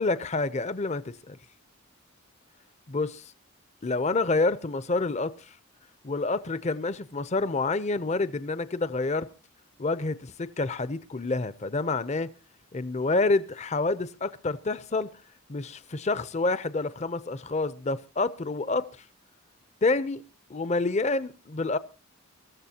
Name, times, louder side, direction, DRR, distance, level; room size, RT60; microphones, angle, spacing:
voice 1, 0.0-1.4 2.9-3.2 3.8-5.5 6.0-9.3 9.8-12.3 12.7-15.1 15.5-18.9 19.8-20.2 20.5-21.8, left 3 dB, 30° left, 0.6 m, -28 dB
23.5 x 14.0 x 2.9 m
head